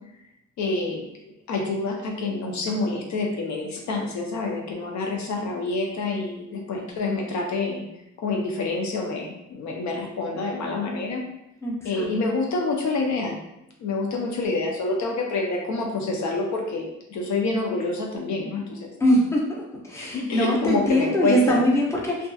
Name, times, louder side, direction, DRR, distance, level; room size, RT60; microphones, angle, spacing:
voice 1, 0.6-1.1 1.5-7.8 8.2-11.2 11.8-13.3 13.8-18.9 20.0-21.6, left 3 dB, 70° left, 1 dB, 0.6 m, -27 dB
voice 2, 11.6-12.0 19.0-19.4 19.9-22.3, equal, 10° left, -3 dB, 0.6 m, -22 dB
2.5 x 2.4 x 2.3 m, 0.84 s
cardioid pair, 90°, 30 cm